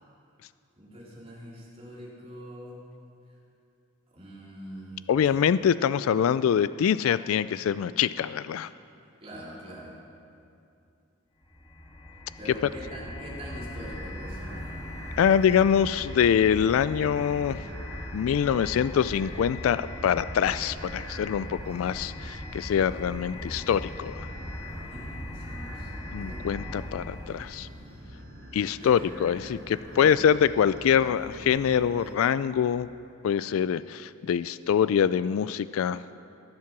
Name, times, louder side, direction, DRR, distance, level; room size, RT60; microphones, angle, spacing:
voice 1, 0.8-2.8 4.1-5.1 9.2-9.9 12.4-14.8 24.8-26.6 28.8-29.1 29.9-30.2, equal, 30° right, -5 dB, 3.2 m, -43 dB
voice 2, 5.1-8.7 15.2-17.6 18.1-24.3 26.1-27.7 28.5-32.9 33.2-36.2, left 8 dB, 85° left, 15 dB, 0.3 m, -24 dB
sound 1, 11.4-27.6, left 1 dB, 15° left, 1.5 m, -40 dB
sound 2, 13.4-32.2, equal, 65° right, 3.4 m, -45 dB
20.5 x 7.6 x 6.0 m, 2.6 s
head